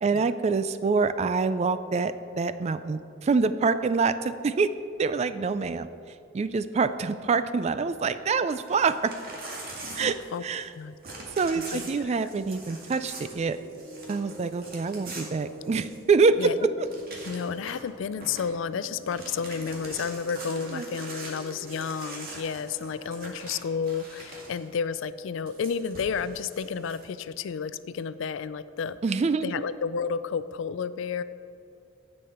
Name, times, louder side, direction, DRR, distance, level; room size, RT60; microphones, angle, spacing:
voice 1, 0.0-4.7 5.0-9.1 10.0-10.7 11.4-13.6 14.1-16.5 20.7-20.9 29.0-29.6, right 4 dB, 35° right, 13 dB, 0.3 m, -26 dB
Crumpling crinkling / Tearing, 8.6-10.7 11.0-16.1 16.5-16.6 16.8-17.9 18.2-18.5 18.9-24.6 25.5-27.0, right 2 dB, 50° right, 1.9 m, -43 dB
voice 2, 10.0-10.4 10.7-11.0 11.5-12.2 16.4-16.7 17.3-29.0 29.4-31.2, left 6 dB, 65° left, 15 dB, 0.4 m, -31 dB
sound 1, 13.0-23.4, equal, 90° right, 2.3 m, -47 dB
16.0 x 5.4 x 4.3 m, 2.6 s
head